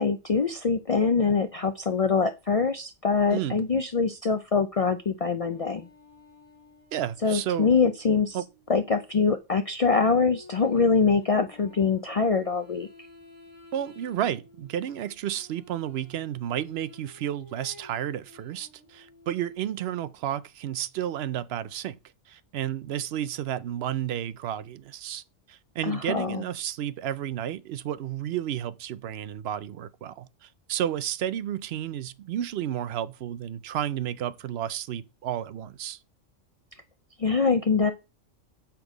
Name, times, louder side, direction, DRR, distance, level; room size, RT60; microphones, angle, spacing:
voice 1, 0.0-5.9 7.2-8.4 8.7-12.9 25.8-26.4 37.2-37.9, left 5 dB, 65° left, 0.3 m, -24 dB
voice 2, 3.3-3.7 6.9-7.7 8.3-8.4 13.7-22.0 22.3-25.2 25.5-36.0, right 11 dB, 65° right, 0.7 m, -32 dB
sound 1, 5.4-8.9 10.0-19.6, left 2 dB, 20° right, 4.2 m, -52 dB
6.8 x 5.9 x 4.9 m
omnidirectional pair, 1.3 m